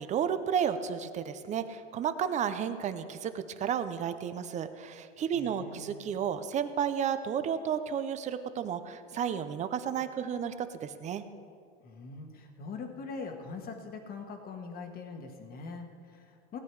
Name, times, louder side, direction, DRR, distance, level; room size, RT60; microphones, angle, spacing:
voice 1, 0.0-11.2, right 8 dB, 20° right, 11 dB, 0.5 m, -32 dB
voice 2, 5.3-6.0 11.8-16.6, left 4 dB, 25° left, 5 dB, 1.4 m, -42 dB
18.0 x 9.1 x 4.7 m, 2.2 s
supercardioid pair, 140°, 33 cm